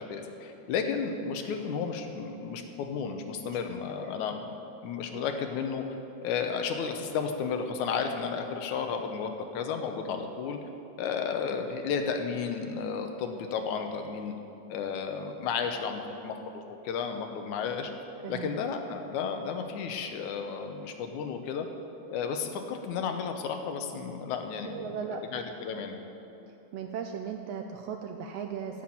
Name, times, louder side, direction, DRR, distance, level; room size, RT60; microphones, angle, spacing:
voice 1, 0.0-4.5 4.8-5.8 6.2-10.6 11.0-14.3 14.7-17.9 18.3-21.7 22.1-26.0, left 6 dB, 85° left, 5 dB, 2.3 m, -33 dB
voice 2, 18.2-18.6 24.6-25.4 26.7-28.8, right 7 dB, 80° right, 4 dB, 1.5 m, -37 dB
10.0 x 7.8 x 8.8 m, 2.9 s
omnidirectional pair, 3.4 m